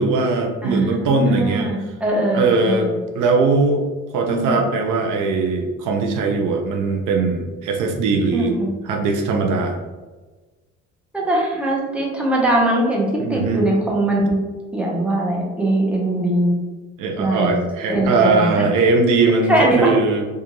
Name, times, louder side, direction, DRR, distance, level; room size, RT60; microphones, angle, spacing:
voice 1, 0.0-1.7 2.3-2.9 3.1-3.8 4.1-8.6 8.8-9.8 13.2-13.7 17.0-20.2, right 3 dB, 85° right, 3 dB, 0.5 m, -20 dB
voice 2, 0.6-2.9 4.3-4.6 8.3-8.7 11.1-14.4 14.7-16.6 17.2-17.6 17.9-18.7 19.2-19.9, right 1 dB, 5° right, -3 dB, 0.8 m, -21 dB
2.5 x 2.4 x 3.0 m, 1.3 s
cardioid pair, 90°, 30 cm